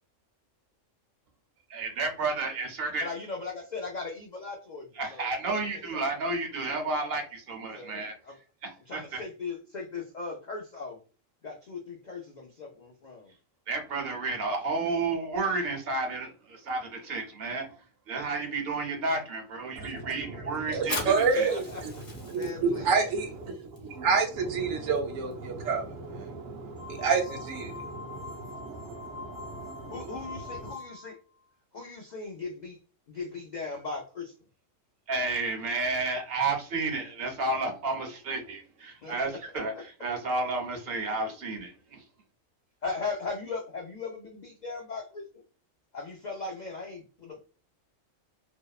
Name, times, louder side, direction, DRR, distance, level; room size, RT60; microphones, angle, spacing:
voice 1, 1.7-3.1 5.0-8.1 8.6-9.2 13.7-17.7 18.1-21.5 35.1-42.0, right 3 dB, 55° right, 0.8 m, -31 dB
voice 2, 3.0-5.3 5.7-6.0 7.7-8.4 8.9-11.0 11.4-13.3 21.3-21.8 22.3-22.9 29.9-31.1 31.7-32.8 33.1-34.3 39.0-39.8 42.8-45.2 45.9-47.4, left 4 dB, 75° left, 0.4 m, -38 dB
voice 3, 19.8-30.7, right 5 dB, 85° right, 1.1 m, -30 dB
Fire, 20.8-28.0, left 2 dB, 45° left, 0.9 m, -43 dB
sound 1, 26.8-31.2, left 4 dB, 15° left, 0.5 m, -44 dB
2.7 x 2.0 x 2.3 m
omnidirectional pair, 1.3 m